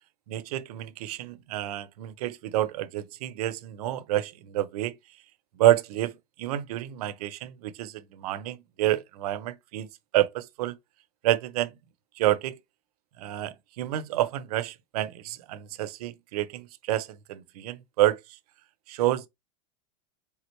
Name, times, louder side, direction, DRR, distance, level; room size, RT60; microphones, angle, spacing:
voice 1, 0.3-4.9 5.6-6.1 6.4-9.9 10.1-10.7 11.2-11.7 12.2-12.6 13.2-18.2 18.9-19.3, right 14 dB, 65° right, 0.6 m, -28 dB
4.4 x 3.5 x 3.0 m
supercardioid pair, 165°, 21 cm